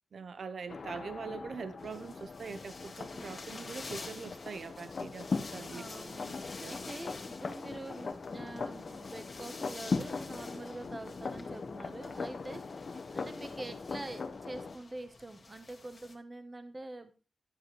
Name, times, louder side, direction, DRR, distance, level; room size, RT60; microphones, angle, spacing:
voice 1, 0.1-5.8 6.6-6.7, right 5 dB, 70° right, 0.8 m, -43 dB
sound 1, 0.7-14.8, left 4 dB, 55° left, 1.2 m, -40 dB
sound 2, 1.8-16.1, left 3 dB, 40° left, 2.3 m, -50 dB
voice 2, 5.6-17.1, right 2 dB, 25° right, 1.1 m, -45 dB
12.0 x 7.8 x 3.2 m
wide cardioid pair, 100°, 0 cm